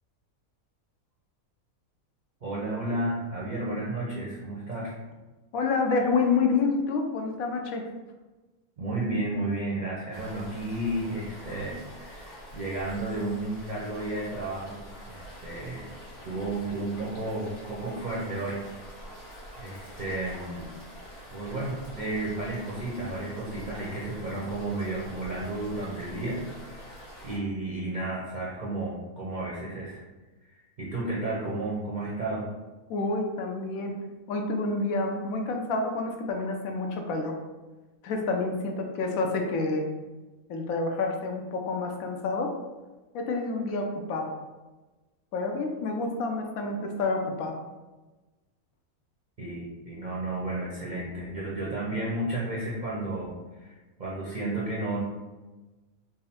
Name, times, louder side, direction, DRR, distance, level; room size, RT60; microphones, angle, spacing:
voice 1, 2.4-5.0 8.8-15.9 16.2-18.6 19.6-20.8 21.3-26.9 27.2-30.0 30.8-32.5 49.4-55.0, right 2 dB, 55° right, -6 dB, 0.5 m, -32 dB
voice 2, 5.5-7.8 32.9-33.9 34.3-37.4 38.0-39.8 40.5-42.5 43.1-44.4 45.3-47.6, left 3 dB, 75° left, 3 dB, 1.0 m, -28 dB
sound 1, 10.1-27.4, equal, 55° left, 1.3 m, -45 dB
3.6 x 2.0 x 4.1 m, 1.2 s
omnidirectional pair, 1.5 m